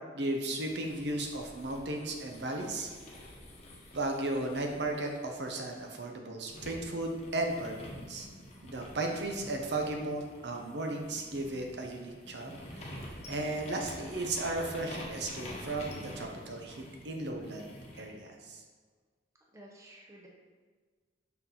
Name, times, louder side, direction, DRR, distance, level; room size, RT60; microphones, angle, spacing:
voice 1, 0.1-2.9 3.9-8.3 8.6-13.0 13.3-18.6, right 2 dB, 65° right, 2 dB, 0.7 m, -35 dB
sound 1, 0.6-6.0 6.5-18.1, left 1 dB, 35° left, 0.9 m, -48 dB
voice 2, 19.5-20.3, right 1 dB, 15° right, -2 dB, 0.7 m, -53 dB
5.8 x 4.3 x 3.8 m, 1.5 s
head